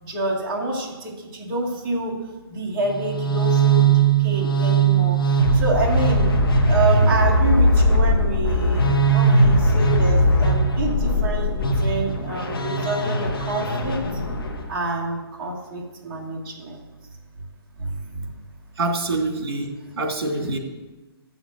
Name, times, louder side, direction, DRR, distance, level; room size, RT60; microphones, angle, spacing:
voice 1, 0.0-2.2 2.5-5.2 5.5-6.3 6.7-14.0 14.7-16.8 17.8-18.3, right 2 dB, 15° right, -6 dB, 1.6 m, -27 dB
sound 1, 2.8-14.7, right 2 dB, 60° left, 1.6 m, -19 dB
voice 2, 18.8-20.6, right 2 dB, 65° right, 2 dB, 2.4 m, -25 dB
7.9 x 7.1 x 7.8 m, 1.1 s
hypercardioid pair, 180°, 13 cm